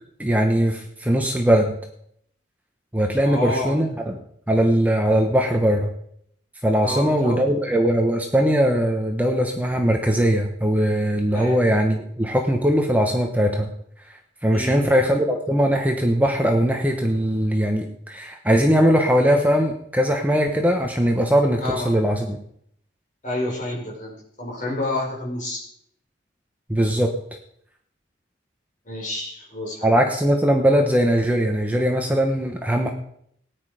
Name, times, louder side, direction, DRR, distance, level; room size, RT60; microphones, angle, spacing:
voice 1, 0.2-1.8 2.9-4.2 4.5-5.9 6.6-13.7 14.1-22.4 26.7-27.1 29.8-32.9, equal, 10° right, 2 dB, 1.1 m, -20 dB
voice 2, 3.2-3.7 6.8-7.4 11.3-11.6 14.5-15.0 21.6-21.9 23.2-25.6 28.9-29.9, left 1 dB, 40° left, -2 dB, 4.9 m, -29 dB
18.0 x 9.8 x 5.0 m, 0.69 s
head